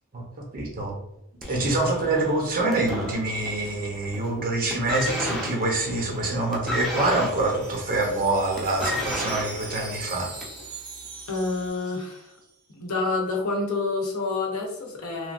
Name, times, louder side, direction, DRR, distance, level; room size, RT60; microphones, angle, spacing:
voice 1, 0.1-0.9 1.5-10.3, right 2 dB, 40° right, 0 dB, 0.7 m, -26 dB
sound 1, 1.4-3.7 4.0-4.4 4.7-10.7 11.5-11.6, left 1 dB, ahead, 0.6 m, -33 dB
Wind chime, 6.5-12.5, right 4 dB, 85° right, 0.7 m, -42 dB
voice 2, 11.3-12.3 12.7-15.3, left 3 dB, 70° left, 1 dB, 0.7 m, -28 dB
3.1 x 2.3 x 2.5 m, 0.84 s
head